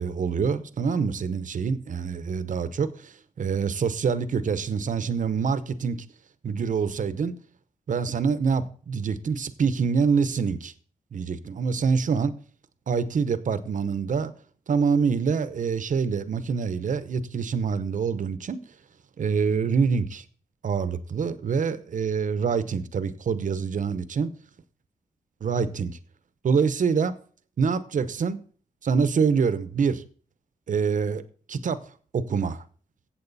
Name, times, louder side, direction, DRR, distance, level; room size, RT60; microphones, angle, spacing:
voice 1, 0.0-6.0 6.4-7.4 7.9-10.7 11.1-12.4 12.9-14.3 14.7-18.6 19.2-20.2 20.6-24.3 25.4-26.0 26.4-27.2 27.6-28.4 28.8-30.0 30.7-31.2 31.5-31.8 32.1-32.6, right 5 dB, 70° right, 0.9 m, -25 dB
15.0 x 7.8 x 4.1 m
cardioid pair, 85°, 14 cm